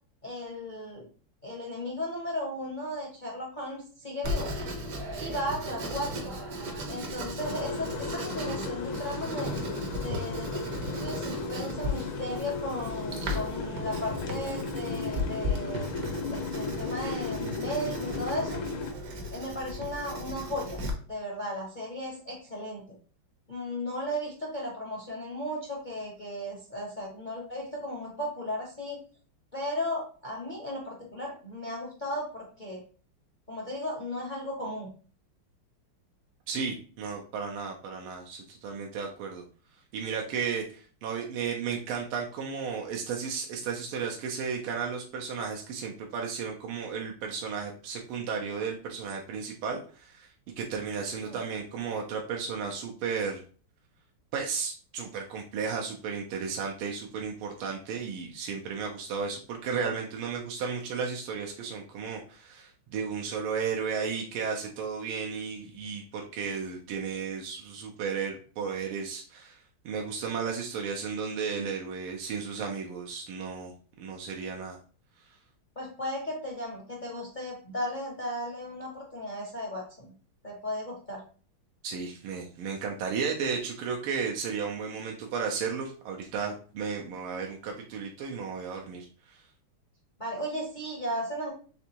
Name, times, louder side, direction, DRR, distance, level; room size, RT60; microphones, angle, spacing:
voice 1, 0.2-1.1 1.4-4.5 5.2-6.4 6.9-9.5 9.9-15.9 16.3-18.6 19.3-20.8 21.1-22.8 23.5-29.0 29.5-32.8 33.5-34.9 51.2-51.4 75.8-80.1 80.4-81.2 90.2-91.5, left 1 dB, 40° left, -2 dB, 0.7 m, -35 dB
Writing, 4.2-20.9, left 1 dB, 55° right, 1.1 m, -36 dB
sound 1, 7.4-18.9, left 4 dB, 70° left, 1.4 m, -36 dB
voice 2, 36.5-39.4 39.9-53.4 54.3-69.6 69.8-73.7 74.0-74.8 81.8-89.4, right 6 dB, 80° right, 0 dB, 1.6 m, -34 dB
5.1 x 3.4 x 2.8 m, 0.41 s
omnidirectional pair, 2.4 m